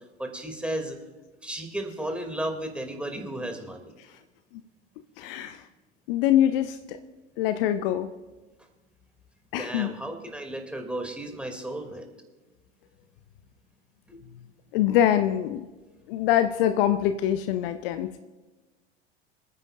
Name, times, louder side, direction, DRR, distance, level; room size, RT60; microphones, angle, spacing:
voice 1, 0.2-1.0 1.4-3.9 9.6-12.1 14.1-14.2, right 1 dB, 5° right, 3 dB, 2.5 m, -34 dB
voice 2, 5.2-5.6 6.1-7.0 7.4-8.1 9.5-9.9 14.7-15.7 16.1-18.2, left 11 dB, 55° left, 11 dB, 0.7 m, -24 dB
27.0 x 9.7 x 2.5 m, 1.2 s
figure-of-eight pair, 75°, 33 cm